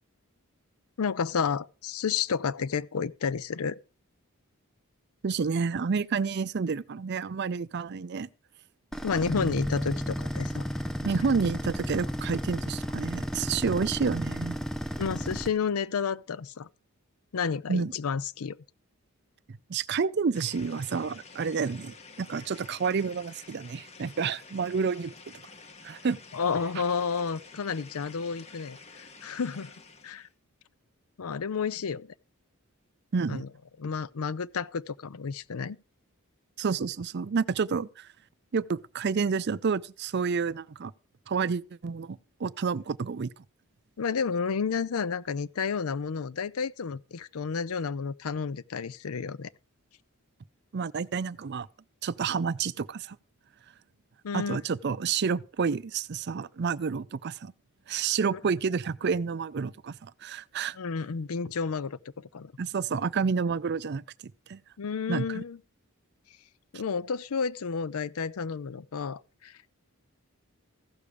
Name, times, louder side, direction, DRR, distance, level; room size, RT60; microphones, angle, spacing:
voice 1, 1.0-3.8 9.0-10.6 15.0-16.7 17.3-18.6 26.3-29.7 30.0-30.3 31.2-32.1 33.3-33.5 33.8-35.8 44.0-49.5 54.2-54.6 58.3-58.4 60.7-62.5 64.8-65.6 66.7-69.6, left 5 dB, 80° left, 0.5 m, -31 dB
voice 2, 5.2-8.3 11.0-14.6 17.7-17.9 19.7-25.1 25.8-26.2 33.1-33.4 36.6-38.1 38.5-40.9 41.3-43.3 50.7-51.7 52.0-53.2 54.3-57.5 57.9-60.8 62.6-64.0 64.5-64.6 65.1-65.4, right 5 dB, 50° right, 0.4 m, -29 dB
sound 1, 8.9-15.5, equal, ahead, 0.6 m, -33 dB
sound 2, 20.3-30.3, left 4 dB, 30° left, 1.1 m, -50 dB
15.5 x 6.9 x 4.8 m
head